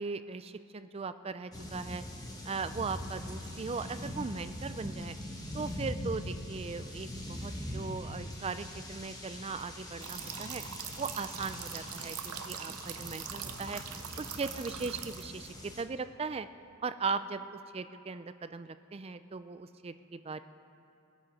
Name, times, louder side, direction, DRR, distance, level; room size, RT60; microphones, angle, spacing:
voice 1, 0.0-2.0 2.5-5.1 5.5-10.6 11.0-13.8 14.2-16.5 16.8-20.4, right 4 dB, 25° right, 12 dB, 0.4 m, -38 dB
sound 1, 1.5-15.8, left 1 dB, 15° left, 1.2 m, -42 dB
sound 2, 10.0-15.5, right 9 dB, 85° right, 0.8 m, -43 dB
22.5 x 8.1 x 5.2 m, 2.8 s
head